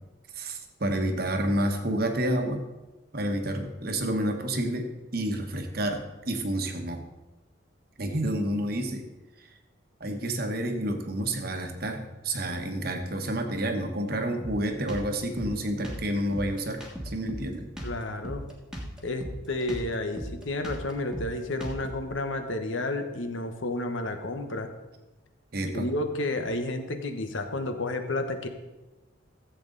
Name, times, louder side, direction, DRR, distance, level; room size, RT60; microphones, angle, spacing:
voice 1, 0.3-2.6 3.1-7.0 8.0-9.1 10.0-17.7 25.5-25.8, right 1 dB, 50° right, 5 dB, 1.2 m, -29 dB
Drum kit, 14.4-22.1, equal, 5° right, 1.5 m, -38 dB
voice 2, 17.8-18.4 19.0-24.7 25.6-28.5, left 2 dB, 75° left, 7 dB, 1.1 m, -31 dB
14.5 x 7.8 x 3.9 m, 1.1 s
head